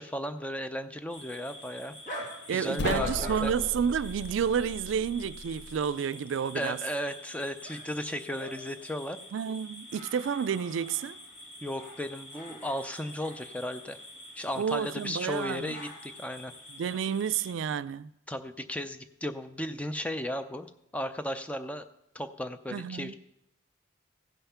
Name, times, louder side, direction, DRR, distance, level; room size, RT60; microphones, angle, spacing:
voice 1, 0.0-1.9 2.5-3.5 6.5-9.2 11.6-14.0 14.4-16.5 18.3-20.7 20.9-21.8 22.1-23.1, equal, 5° left, 0.4 m, -35 dB
sound 1, 1.1-17.5, left 1 dB, 40° left, 2.6 m, -45 dB
voice 2, 2.5-6.8 9.3-11.2 14.6-15.7 16.8-18.1 22.7-23.1, right 7 dB, 80° right, 0.3 m, -30 dB
sound 2, 2.8-5.8, left 3 dB, 60° left, 0.5 m, -37 dB
15.5 x 5.7 x 5.6 m
head